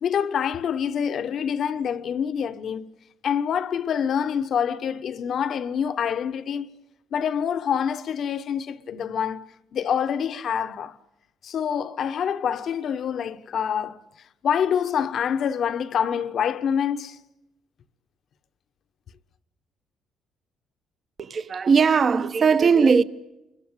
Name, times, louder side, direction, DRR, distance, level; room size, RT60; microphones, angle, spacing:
voice 1, 0.0-2.9 3.2-6.7 7.1-9.4 9.7-10.9 11.4-14.0 14.4-17.2, left 8 dB, 55° left, 1.3 m, -26 dB
voice 2, 21.2-23.0, right 5 dB, 40° right, 1.2 m, -19 dB
29.0 x 22.5 x 8.3 m
cardioid pair, 100°, 0 cm